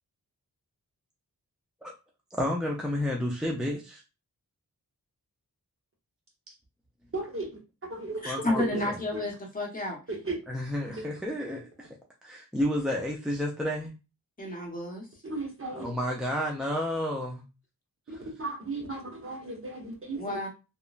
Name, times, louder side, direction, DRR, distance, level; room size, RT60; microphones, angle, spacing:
voice 1, 2.4-4.0 8.2-8.9 10.5-11.9 12.2-13.9 15.8-17.4 18.1-18.2, left 1 dB, ahead, -2 dB, 0.3 m, -31 dB
voice 2, 7.1-7.5 7.9-8.2 8.7-8.8 10.1-10.4 10.9-11.1 15.2-15.9 18.1-20.4, right 2 dB, 40° right, -1 dB, 0.9 m, -35 dB
voice 3, 8.2-10.0 14.4-15.1 20.2-20.5, left 1 dB, 25° left, -1 dB, 0.9 m, -31 dB
2.9 x 2.1 x 2.4 m, 0.30 s
wide cardioid pair, 105°, 35 cm